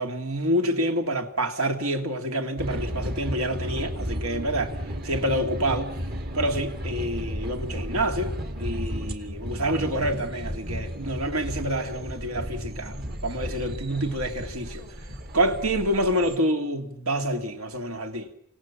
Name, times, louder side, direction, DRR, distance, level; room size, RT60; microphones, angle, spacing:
voice 1, 0.0-4.8 5.0-5.9 6.3-13.0 13.2-14.9 15.3-18.3, right 1 dB, 75° right, 2.6 m, -27 dB
sound 1, 2.6-16.4, equal, 45° right, 2.2 m, -34 dB
29.5 x 26.0 x 7.3 m
head